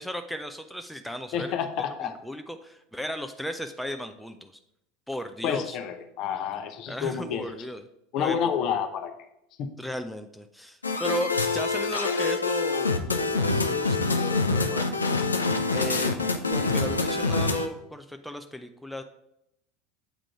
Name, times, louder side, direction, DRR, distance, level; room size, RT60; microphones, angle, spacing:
voice 1, 0.0-1.5 2.0-4.5 5.1-5.8 6.9-7.8 8.2-8.4 9.8-15.1 15.7-19.0, left 1 dB, ahead, 7 dB, 0.5 m, -35 dB
voice 2, 1.3-2.1 5.4-7.5 8.1-9.1 9.6-9.7, left 8 dB, 50° left, 7 dB, 0.8 m, -29 dB
sound 1, 10.8-17.7, left 3 dB, 90° left, 0.5 m, -25 dB
8.1 x 3.7 x 4.7 m, 0.81 s
hypercardioid pair, 80°, 0 cm